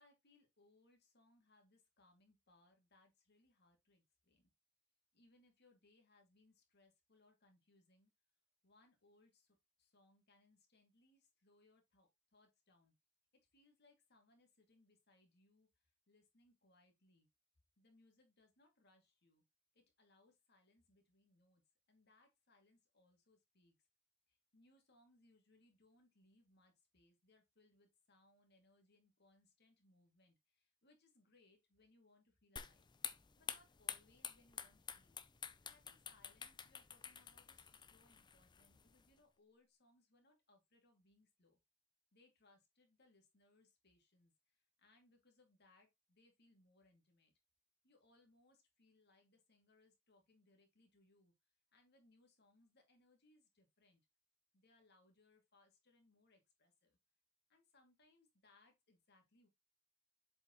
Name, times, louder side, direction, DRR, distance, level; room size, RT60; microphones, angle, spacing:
voice 1, 0.0-4.5 5.1-8.1 8.6-12.9 13.5-17.3 17.8-19.4 19.7-21.6 21.9-23.7 24.3-32.9 33.4-41.6 42.1-47.3 47.8-54.0 54.5-57.0 57.5-59.5, left 2 dB, 55° left, 2.5 m, -72 dB
sound 1, 32.6-39.1, left 7 dB, 20° left, 0.5 m, -50 dB
7.4 x 5.2 x 3.0 m
head